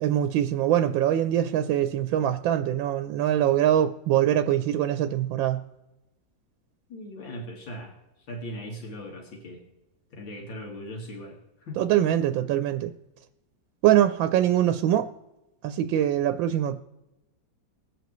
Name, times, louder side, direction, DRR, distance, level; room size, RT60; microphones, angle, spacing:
voice 1, 0.0-5.6 11.8-12.9 13.8-15.1 15.6-16.8, right 11 dB, 90° right, 9 dB, 1.4 m, -23 dB
voice 2, 6.9-9.6 10.1-11.8, equal, 80° left, -1 dB, 2.5 m, -39 dB
21.0 x 8.2 x 3.1 m, 0.97 s
omnidirectional pair, 2.1 m